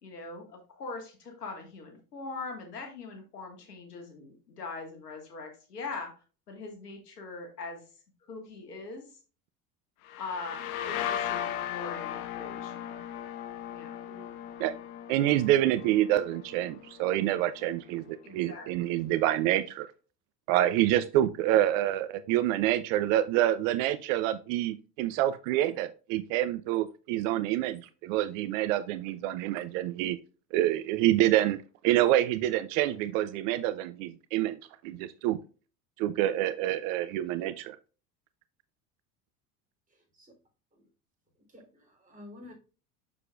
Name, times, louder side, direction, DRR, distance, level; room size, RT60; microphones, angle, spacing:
voice 1, 0.0-6.1 6.5-7.8 8.3-9.1 10.2-13.0 13.7-14.0 18.2-19.0, left 3 dB, 85° left, 1.9 m, -42 dB
sound 1, 10.1-17.6, left 10 dB, 65° left, 0.9 m, -37 dB
voice 2, 14.0-14.4 39.9-40.3 40.7-40.9 41.3-42.5, left 2 dB, 15° right, 3.5 m, -52 dB
voice 3, 15.1-19.9 20.5-30.2 30.5-31.6 31.8-35.4 36.0-37.8, right 13 dB, 55° right, 0.6 m, -27 dB
6.7 x 6.6 x 2.4 m
hypercardioid pair, 70°, 46 cm